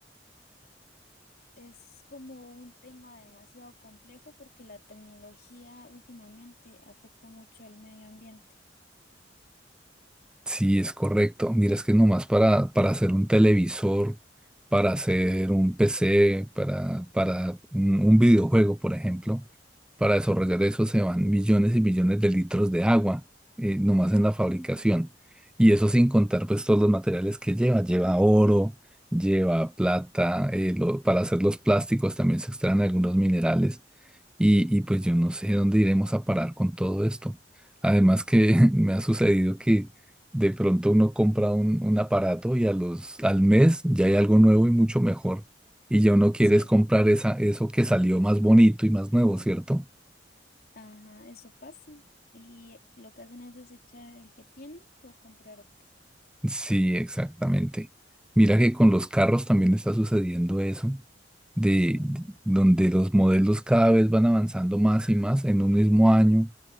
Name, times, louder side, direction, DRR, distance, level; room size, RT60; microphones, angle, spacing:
voice 1, 1.6-8.6 24.7-24.9 46.4-46.7 50.7-52.0 52.3-55.7 61.8-62.1, left 2 dB, 55° left, 3.7 m, -50 dB
voice 2, 10.5-14.2 14.7-19.4 20.0-23.2 23.6-25.1 25.6-28.7 29.1-33.8 34.4-37.4 37.8-39.9 40.3-45.4 45.9-49.8 56.4-57.9 58.4-61.0 61.6-66.5, right 1 dB, 5° right, 0.3 m, -22 dB
head